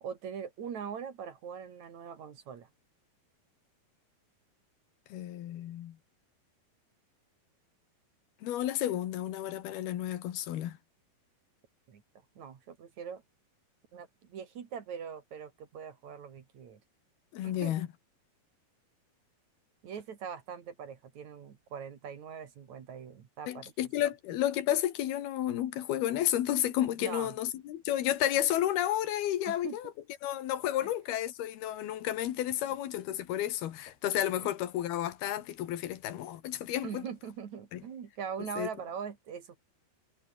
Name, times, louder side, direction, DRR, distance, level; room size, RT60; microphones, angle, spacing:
voice 1, 0.0-2.7 11.9-12.0 12.4-13.2 13.9-16.8 17.4-17.7 19.8-23.7 27.0-27.3 29.5-29.8 30.8-30.9 36.8-39.6, right 7 dB, 55° right, 3.2 m, -42 dB
voice 2, 5.1-6.0 8.4-10.8 17.3-17.9 23.5-29.9 30.2-37.0 37.7-37.8 38.6-38.7, left 12 dB, 85° left, 3.6 m, -31 dB
omnidirectional pair, 4.4 m